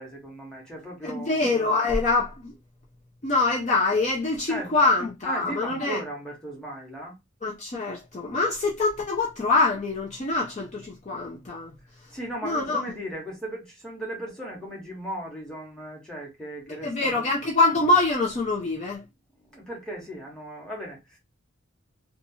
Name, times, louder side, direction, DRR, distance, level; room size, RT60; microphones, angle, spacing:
voice 1, 0.0-1.5 4.5-4.7 5.2-7.1 12.1-17.3 19.5-21.2, right 1 dB, 5° left, 1.1 m, -37 dB
voice 2, 1.0-2.5 3.2-6.0 7.4-11.7 12.4-12.8 16.7-19.0, left 3 dB, 35° left, 0.5 m, -24 dB
2.8 x 2.3 x 2.7 m
head